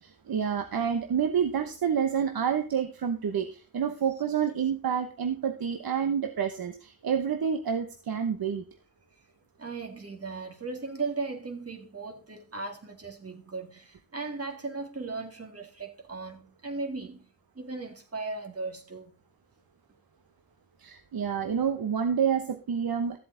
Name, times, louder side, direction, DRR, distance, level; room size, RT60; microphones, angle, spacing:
voice 1, 0.0-8.6 20.8-23.2, right 7 dB, 75° right, 1.0 m, -28 dB
voice 2, 9.6-17.3 17.6-19.1, right 3 dB, 40° right, 2.1 m, -37 dB
13.5 x 7.7 x 3.8 m
cardioid pair, 50°, 37 cm